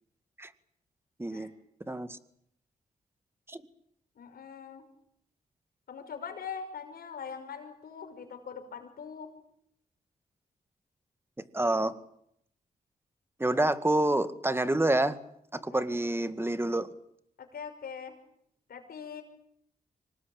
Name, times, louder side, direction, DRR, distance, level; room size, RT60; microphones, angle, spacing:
voice 1, 1.2-1.5 1.9-2.2 3.5-3.6 11.5-11.9 13.4-15.2 15.5-16.9, right 1 dB, 15° right, 11 dB, 2.0 m, -27 dB
voice 2, 4.2-4.8 5.9-9.3 15.7-16.0 17.5-18.1 18.7-19.2, left 6 dB, 80° left, 6 dB, 5.7 m, -42 dB
25.0 x 19.5 x 8.8 m, 0.72 s
cardioid pair, 65°, 16 cm